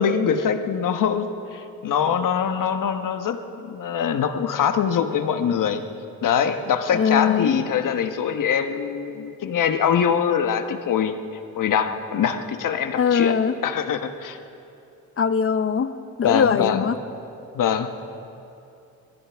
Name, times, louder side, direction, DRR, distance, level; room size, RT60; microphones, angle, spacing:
voice 1, 0.0-5.8 6.2-11.1 11.6-13.3 13.6-14.4 16.2-16.8 17.5-17.9, left 7 dB, 65° left, 8 dB, 1.2 m, -23 dB
voice 2, 6.9-7.6 13.0-13.6 15.2-17.0, left 6 dB, 40° left, 12 dB, 0.8 m, -21 dB
24.0 x 15.5 x 3.5 m, 2.7 s
cardioid pair, 85°, 35 cm